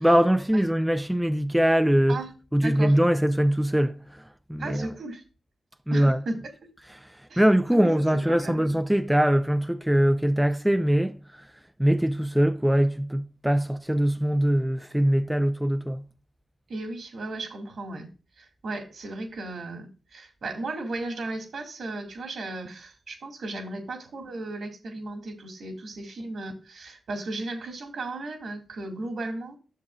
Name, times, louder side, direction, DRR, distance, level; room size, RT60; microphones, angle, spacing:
voice 1, 0.0-2.2 2.5-4.9 5.9-6.2 7.0-11.5 11.8-16.0, equal, 5° right, 0.6 m, -22 dB
voice 2, 2.6-3.0 4.6-5.2 5.9-6.4 7.3-7.4 7.7-7.9 8.3-8.6 16.7-18.1 18.4-29.6, right 2 dB, 75° right, 2.3 m, -35 dB
11.0 x 7.0 x 2.4 m
cardioid pair, 50°, 0 cm